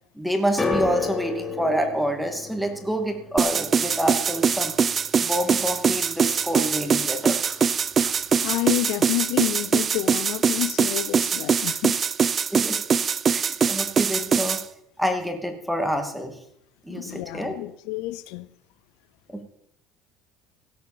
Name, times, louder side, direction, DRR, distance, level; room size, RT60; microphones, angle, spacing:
voice 1, 0.2-4.7 5.2-8.5 12.5-12.8 13.3-14.6 15.0-16.3 16.8-17.5, equal, ahead, 2.5 m, -28 dB
sound 1, 0.6-6.9 7.1-7.8 8.5-8.6, left 4 dB, 15° left, 2.3 m, -33 dB
sound 2, 3.4-14.6, right 6 dB, 35° right, 0.6 m, -22 dB
voice 2, 8.4-12.0 16.9-18.5, left 18 dB, 75° left, 0.5 m, -29 dB
16.5 x 5.9 x 7.4 m
supercardioid pair, 95°, 0 cm